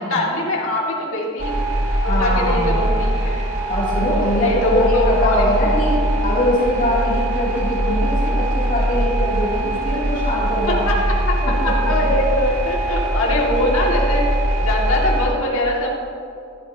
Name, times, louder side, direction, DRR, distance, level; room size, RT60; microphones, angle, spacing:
voice 1, 0.0-1.5 2.0-3.4 4.4-5.5 6.1-6.2 10.7-11.0 11.3-11.4 11.6-14.2 14.6-15.9, left 1 dB, 65° left, -3 dB, 2.5 m, -22 dB
sound 1, 1.4-15.3, right 1 dB, 80° right, 2.2 m, -21 dB
voice 2, 2.1-2.8 3.7-10.8 11.4-11.9, equal, 40° left, -7 dB, 2.9 m, -22 dB
15.0 x 11.5 x 3.0 m, 2.5 s
head